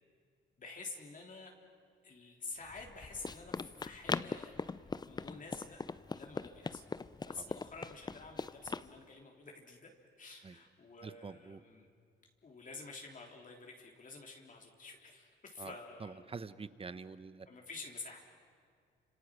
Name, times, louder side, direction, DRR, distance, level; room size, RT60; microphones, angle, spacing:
voice 1, 0.6-1.5 2.0-4.5 5.0-5.8 6.1-6.8 7.2-9.9 10.2-11.9 12.4-16.3 17.5-18.2, left 3 dB, 40° left, 1 dB, 3.5 m, -49 dB
Run, 2.7-8.9, left 4 dB, 20° left, 0.6 m, -41 dB
voice 2, 11.0-11.6 15.6-15.7 16.0-17.5, right 4 dB, 30° right, 14 dB, 1.0 m, -46 dB
29.5 x 27.0 x 6.3 m, 2.2 s
cardioid pair, 90°, 20 cm